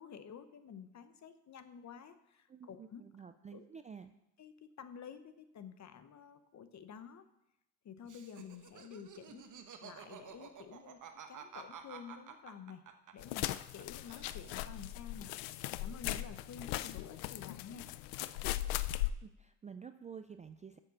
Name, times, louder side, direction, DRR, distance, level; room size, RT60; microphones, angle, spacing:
voice 1, 0.0-3.0 3.5-3.6 4.4-7.2 7.8-11.0 11.3-12.8 13.1-17.9, left 7 dB, 40° left, 11 dB, 1.0 m, -51 dB
voice 2, 2.5-4.1 19.2-20.8, right 6 dB, 20° right, 9 dB, 0.3 m, -50 dB
Laughter, 8.0-13.8 14.1-14.9, right 8 dB, 45° right, 1.2 m, -51 dB
sound 1, 13.2-19.1, left 15 dB, 85° left, 0.5 m, -39 dB
7.4 x 6.7 x 7.1 m, 0.86 s
supercardioid pair, 90°, 42 cm